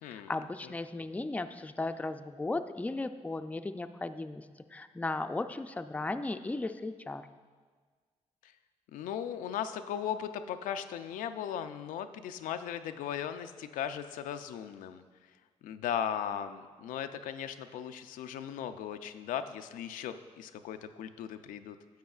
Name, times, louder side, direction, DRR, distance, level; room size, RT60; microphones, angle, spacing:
voice 1, 0.1-4.5 4.7-7.2, left 2 dB, 10° left, 9 dB, 0.4 m, -36 dB
voice 2, 8.9-15.0 15.6-21.8, left 9 dB, 85° left, 9 dB, 0.4 m, -37 dB
10.0 x 7.5 x 2.4 m, 1.5 s
cardioid pair, 65°, 13 cm